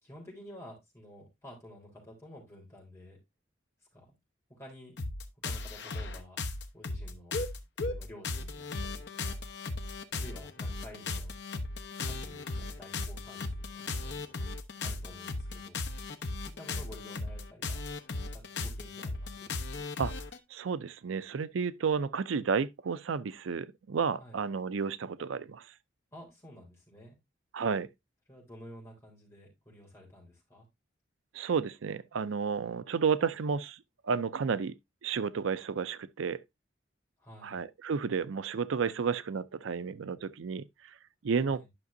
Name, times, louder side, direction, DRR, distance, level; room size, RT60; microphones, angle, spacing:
voice 1, 0.0-3.2 3.9-4.1 4.6-5.0 5.4-6.4 6.7-9.5 10.1-11.3 12.0-15.8 16.6-17.8 18.3-19.6 24.2-24.4 26.1-27.2 28.3-30.7 37.2-37.6 41.5-41.7, left 1 dB, 15° left, 3.8 m, -51 dB
sound 1, 5.0-20.4, left 3 dB, 60° left, 0.9 m, -36 dB
voice 2, 20.5-25.7 27.5-27.9 31.3-36.4 37.4-40.7 41.2-41.6, right 6 dB, 85° right, 0.5 m, -32 dB
11.0 x 5.9 x 2.6 m
head